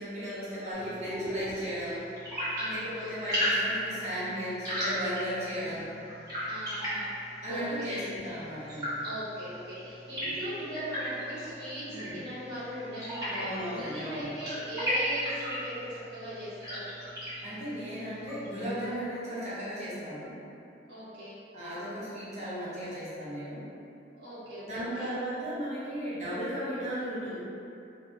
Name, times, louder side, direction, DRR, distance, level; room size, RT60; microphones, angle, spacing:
voice 1, 0.0-2.1 2.7-5.9 7.4-8.9 10.2-10.3 11.9-12.2 13.4-14.3 17.4-20.3 21.5-23.7 24.7-27.4, equal, 40° right, -11 dB, 0.8 m, -36 dB
sound 1, 0.7-18.9, equal, 20° right, 1.1 m, -36 dB
voice 2, 2.5-3.3 5.5-5.7 6.5-7.2 7.5-8.0 9.0-16.9 20.9-21.4 24.1-25.1, equal, 70° right, -11 dB, 0.9 m, -40 dB
2.8 x 2.2 x 2.7 m, 2.7 s
head